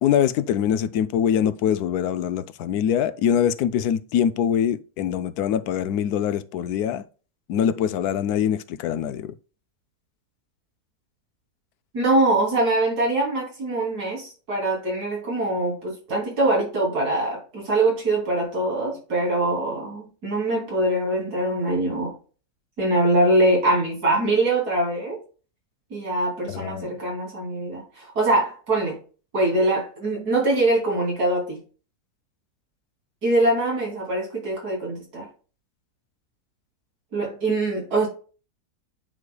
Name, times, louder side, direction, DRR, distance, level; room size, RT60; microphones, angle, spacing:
voice 1, 0.0-7.0 7.5-9.3 26.5-26.9, left 9 dB, 80° left, 1.1 m, -23 dB
voice 2, 11.9-22.2 22.8-25.2 25.9-29.0 29.3-31.6 33.2-35.3 37.1-38.1, right 2 dB, 80° right, 3.5 m, -23 dB
9.5 x 4.8 x 2.2 m
omnidirectional pair, 1.6 m